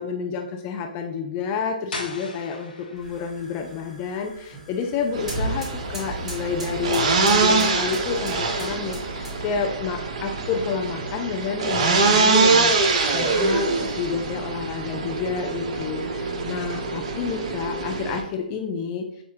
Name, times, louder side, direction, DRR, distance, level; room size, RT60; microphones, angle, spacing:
voice 1, 0.0-19.2, left 5 dB, 25° left, 3 dB, 0.4 m, -29 dB
sound 1, 1.9-7.5, left 2 dB, 80° left, 1.0 m, -42 dB
sound 2, 3.0-9.7, right 1 dB, 10° right, 1.4 m, -36 dB
sound 3, 5.1-18.2, right 3 dB, 45° right, 0.6 m, -24 dB
6.4 x 2.3 x 2.8 m, 0.82 s
figure-of-eight pair, 135°, 5 cm